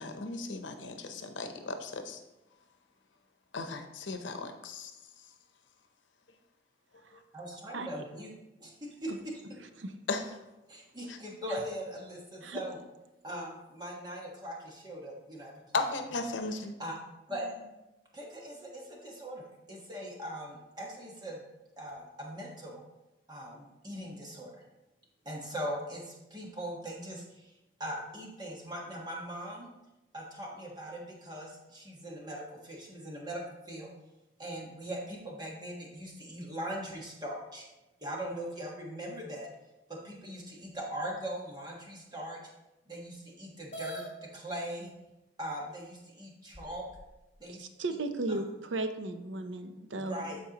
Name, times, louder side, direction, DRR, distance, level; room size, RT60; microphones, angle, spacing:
voice 1, 0.0-2.2 3.5-4.9 10.1-10.2 11.1-11.2 15.7-16.8, left 3 dB, 85° left, 6 dB, 0.8 m, -36 dB
voice 2, 7.3-8.3 8.6-9.3 10.7-12.8 13.2-15.9 16.3-16.4 16.8-16.9 17.3-17.7 18.1-21.4 21.8-22.8 23.3-24.6 25.2-27.5 27.8-29.7 30.1-33.9 34.4-37.6 38.0-39.5 39.9-42.4 42.9-44.9 45.4-46.8 47.4-47.6 48.3-48.4 49.6-50.4, equal, 20° right, -2 dB, 1.3 m, -40 dB
sound 1, 43.7-44.1 45.1-45.2 45.8-45.9 46.5-47.2, equal, 40° left, 2.0 m, -42 dB
voice 3, 47.5-50.2, right 2 dB, 85° right, 7 dB, 0.7 m, -35 dB
13.0 x 4.4 x 2.9 m, 0.98 s
head